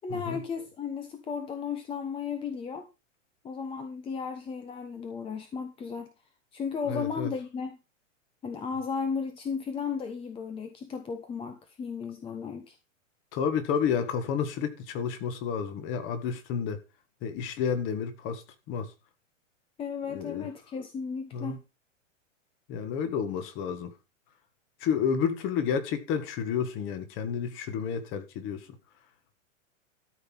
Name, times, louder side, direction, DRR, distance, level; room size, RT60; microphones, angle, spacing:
voice 1, 0.0-2.9 3.4-6.1 6.5-7.8 8.4-12.7 19.8-21.6, left 6 dB, 15° left, 1.0 m, -35 dB
voice 2, 6.9-7.3 13.3-16.8 17.2-18.9 20.1-20.5 21.3-21.6 22.7-23.9 24.8-28.7, left 7 dB, 30° left, 1.9 m, -30 dB
13.5 x 5.5 x 5.8 m
hypercardioid pair, 145°, 39 cm